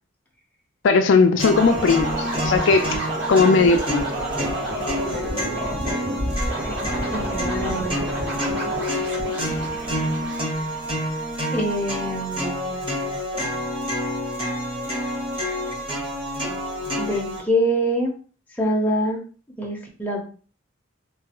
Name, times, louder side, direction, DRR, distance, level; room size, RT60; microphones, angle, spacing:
voice 1, 0.8-3.0 3.3-4.0, left 4 dB, 65° left, 0.3 m, -18 dB
sound 1, 1.4-17.4, equal, 25° right, 1.0 m, -28 dB
sound 2, 1.5-11.1, right 1 dB, 55° right, 1.4 m, -30 dB
voice 2, 7.1-8.2 11.5-12.8 17.0-18.1 18.5-19.2 19.6-20.2, equal, 10° left, 0.6 m, -25 dB
3.1 x 2.3 x 2.9 m
head